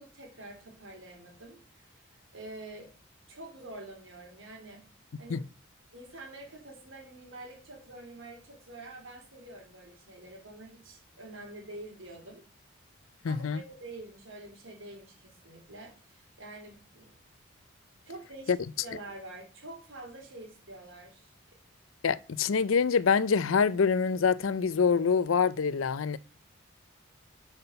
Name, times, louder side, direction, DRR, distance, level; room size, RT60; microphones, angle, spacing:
voice 1, 0.0-2.0 2.3-2.9 3.3-4.9 5.2-5.4 5.9-12.4 13.3-17.2 18.1-21.3, right 2 dB, 70° right, 3.6 m, -47 dB
voice 2, 13.2-13.6 18.5-18.6 22.0-26.2, left 5 dB, 75° left, 0.5 m, -25 dB
10.5 x 6.0 x 5.7 m
head